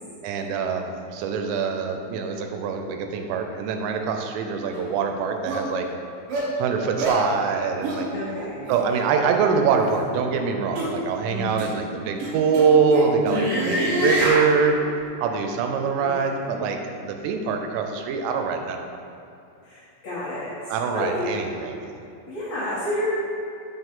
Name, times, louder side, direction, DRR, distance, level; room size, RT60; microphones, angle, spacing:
voice 1, 0.2-5.9 6.6-8.1 8.7-14.8 15.2-18.8 20.7-21.8, right 5 dB, 90° right, 4 dB, 2.8 m, -24 dB
voice 2, 4.6-5.0 8.1-8.8 11.2-11.9 13.2-14.0 16.0-16.6 19.6-21.4 22.3-23.0, left 1 dB, 75° left, -12 dB, 1.6 m, -31 dB
sound 1, 4.7-4.8 5.5-5.6 6.3-6.5 7.0-7.2 7.8-8.0 8.6-8.8 9.7-10.0 10.7-10.9 11.6-11.7 12.2-14.5, right 1 dB, 70° right, 2.4 m, -25 dB
5.7 x 5.6 x 3.6 m, 2.7 s
omnidirectional pair, 4.9 m